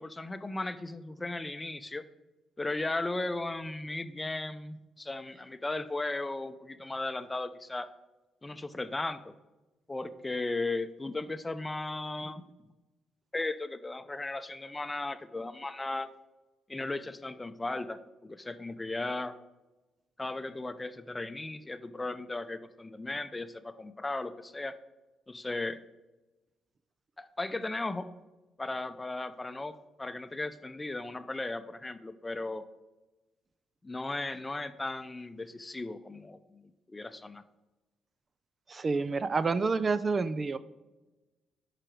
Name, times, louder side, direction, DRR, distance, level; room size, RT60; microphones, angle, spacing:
voice 1, 0.0-2.0 2.6-7.9 8.4-9.3 9.9-12.4 13.3-16.1 16.7-19.3 20.2-24.8 25.3-25.8 27.2-28.1 28.6-32.6 33.8-36.6 36.9-37.4, left 2 dB, 20° left, 11 dB, 0.7 m, -36 dB
voice 2, 38.7-40.6, right 4 dB, 40° right, 14 dB, 0.5 m, -28 dB
11.0 x 5.0 x 4.6 m, 1.1 s
supercardioid pair, 65°, 0 cm